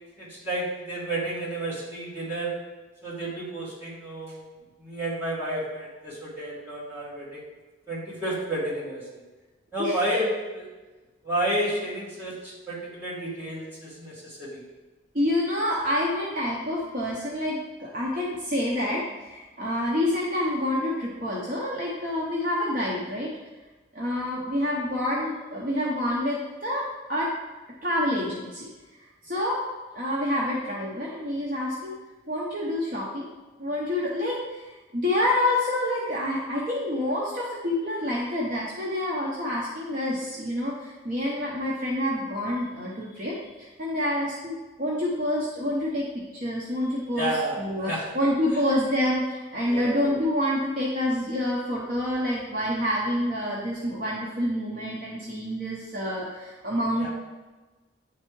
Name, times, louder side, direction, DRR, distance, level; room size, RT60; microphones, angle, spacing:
voice 1, 0.2-2.5 3.0-4.4 4.8-7.5 7.9-9.2 9.7-10.7 11.2-14.6 47.1-48.2 49.7-50.0 57.0-57.1, right 1 dB, 10° right, -9 dB, 2.0 m, -31 dB
voice 2, 15.1-23.3 23.9-26.8 27.1-27.3 27.8-28.7 29.2-29.6 29.9-32.0 32.3-33.3 33.6-34.7 34.9-46.1 46.3-57.1, left 1 dB, 40° right, -5 dB, 0.8 m, -27 dB
9.4 x 3.3 x 3.1 m, 1.2 s
head